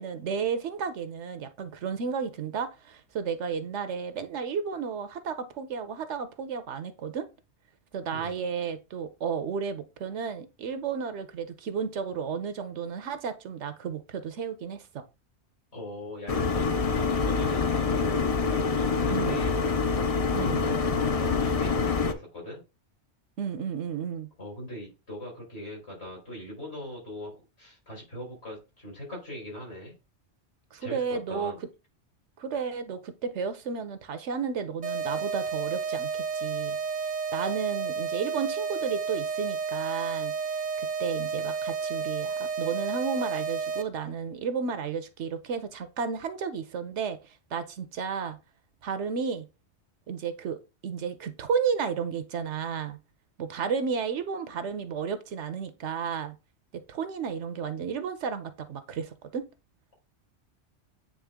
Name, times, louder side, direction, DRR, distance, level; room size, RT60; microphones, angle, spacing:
voice 1, 0.0-7.3 7.9-15.0 19.1-19.4 20.3-20.6 23.4-24.3 30.7-31.5 32.4-36.8 37.3-40.3 40.8-47.2 47.5-48.4 48.8-49.5 50.1-53.0 53.4-56.3 56.9-59.4, right 6 dB, 80° right, 1.1 m, -32 dB
voice 2, 8.1-8.4 15.7-19.6 20.3-20.8 21.2-22.6 24.4-29.9 30.8-31.6, left 1 dB, 65° left, 4.0 m, -40 dB
sound 1, 16.3-22.1, left 4 dB, 45° left, 0.5 m, -26 dB
sound 2, 34.8-43.8, right 5 dB, 45° right, 0.7 m, -31 dB
8.6 x 3.2 x 3.6 m
omnidirectional pair, 1.2 m